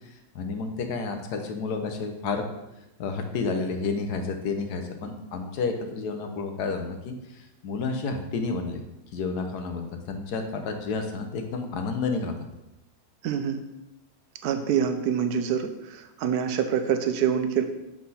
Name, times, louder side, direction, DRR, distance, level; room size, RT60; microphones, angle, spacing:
voice 1, 0.3-2.5 3.0-8.8 9.1-12.4, left 4 dB, 80° left, 5 dB, 1.4 m, -30 dB
voice 2, 13.2-13.6 14.4-17.6, right 8 dB, 80° right, 8 dB, 1.2 m, -26 dB
7.5 x 4.5 x 4.1 m, 0.93 s
omnidirectional pair, 1.7 m